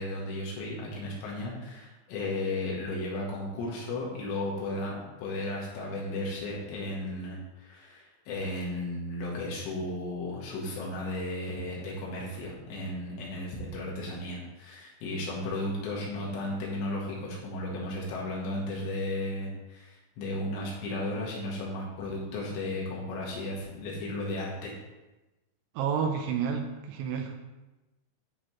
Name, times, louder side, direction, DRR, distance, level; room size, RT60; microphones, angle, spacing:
voice 1, 0.0-24.8, left 1 dB, 75° left, -4 dB, 3.3 m, -34 dB
voice 2, 25.8-27.4, right 7 dB, 80° right, 3 dB, 2.8 m, -30 dB
10.0 x 4.1 x 3.0 m, 1.1 s
omnidirectional pair, 5.4 m